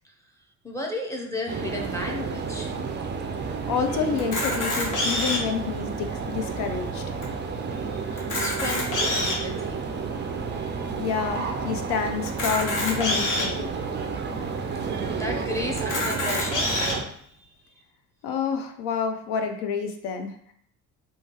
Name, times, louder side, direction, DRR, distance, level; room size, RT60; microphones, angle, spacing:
voice 1, 0.6-2.8 7.8-9.9 10.6-10.9 15.1-16.8 17.4-17.5, left 1 dB, 5° left, 0 dB, 0.7 m, -34 dB
sound 1, 1.5-17.0, right 5 dB, 25° right, 0.4 m, -31 dB
voice 2, 3.7-7.0 11.0-13.7 18.2-20.5, left 6 dB, 60° left, 6 dB, 0.5 m, -28 dB
Camera, 4.2-5.6 6.2-6.3 6.5-6.7 7.2-7.3 8.1-9.5 10.1-10.2 12.3-13.5 14.2-14.3 14.6-14.7 15.8-17.0, left 2 dB, 40° left, 1.0 m, -26 dB
2.8 x 2.3 x 2.9 m, 0.66 s
hypercardioid pair, 55°, 47 cm